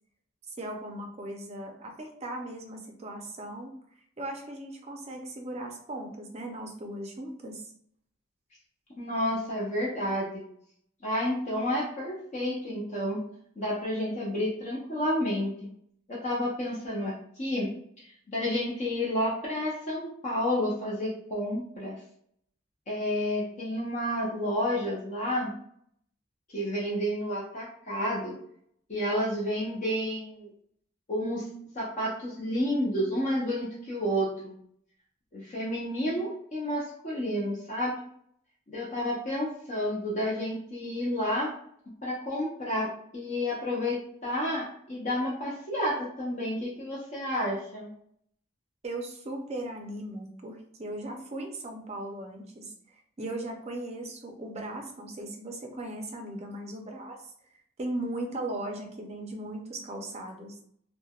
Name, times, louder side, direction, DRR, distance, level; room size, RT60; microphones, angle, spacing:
voice 1, 0.6-3.7 4.2-7.7 48.8-52.7 53.2-57.3 57.8-60.6, right 1 dB, 30° right, 2 dB, 0.5 m, -38 dB
voice 2, 9.0-10.4 11.0-13.2 13.6-15.7 16.1-17.7 18.3-22.0 22.9-25.5 26.5-28.3 28.9-30.5 31.1-31.5 31.7-34.5 35.3-37.9 38.7-41.5 42.0-47.9, equal, 35° left, -5 dB, 0.6 m, -30 dB
3.2 x 2.1 x 2.3 m, 0.66 s
head